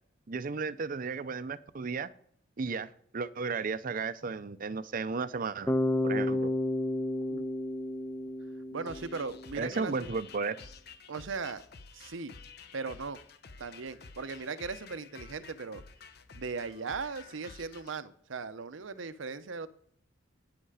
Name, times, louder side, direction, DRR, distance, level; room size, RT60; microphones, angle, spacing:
voice 1, 0.3-2.1 2.6-5.7 6.0-6.5 9.5-10.6, right 4 dB, 45° right, 14 dB, 0.5 m, -34 dB
Bass guitar, 5.7-9.6, left 1 dB, 10° left, 0.5 m, -31 dB
voice 2, 8.7-10.1 11.1-11.6 11.9-12.3 12.7-13.2 13.6-15.8 16.3-19.7, right 4 dB, 80° right, 12 dB, 0.7 m, -38 dB
sound 1, 8.9-18.0, left 5 dB, 55° left, 0.8 m, -51 dB
9.5 x 7.9 x 4.8 m, 0.65 s
head